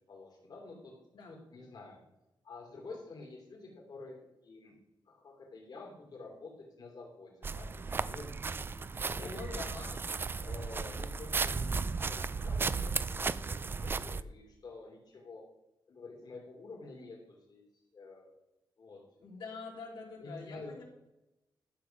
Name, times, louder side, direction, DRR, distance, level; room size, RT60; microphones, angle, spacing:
voice 1, 0.1-0.9 1.2-2.0 2.4-4.2 4.4-4.7 5.1-8.3 9.0-9.4 10.4-13.0 13.2-15.4 15.9-17.6 17.9-18.3 18.8-19.0 20.2-20.8, left 3 dB, 55° left, -2 dB, 3.0 m, -49 dB
sound 1, 7.4-14.2, right 4 dB, 25° right, 0.3 m, -35 dB
voice 2, 9.1-10.1 19.2-20.8, left 4 dB, 85° left, -3 dB, 3.3 m, -45 dB
12.0 x 6.8 x 5.9 m, 0.94 s
wide cardioid pair, 155°, 8 cm